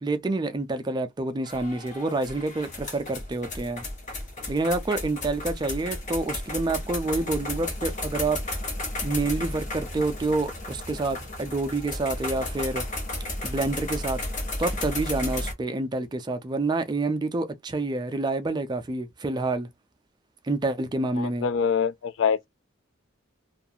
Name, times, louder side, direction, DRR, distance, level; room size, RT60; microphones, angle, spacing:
voice 1, 0.0-3.8 4.5-8.4 9.0-12.8 13.4-14.2 14.6-19.7 20.4-21.5, right 2 dB, 20° right, 0.3 m, -28 dB
sound 1, 1.4-15.5, left 2 dB, 35° left, 0.8 m, -33 dB
voice 2, 21.2-22.5, left 6 dB, 65° left, 0.3 m, -25 dB
2.4 x 2.3 x 2.7 m
head